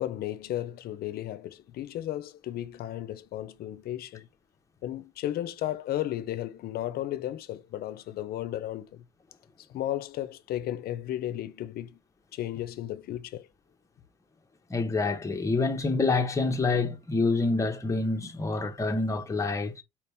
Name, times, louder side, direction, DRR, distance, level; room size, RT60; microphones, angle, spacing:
voice 1, 0.0-4.3 4.8-9.0 9.6-12.0 12.3-13.5, left 13 dB, 65° left, 0.6 m, -34 dB
voice 2, 14.7-19.8, left 3 dB, 20° left, 0.9 m, -27 dB
4.5 x 2.9 x 3.4 m
cardioid pair, 110°, 17 cm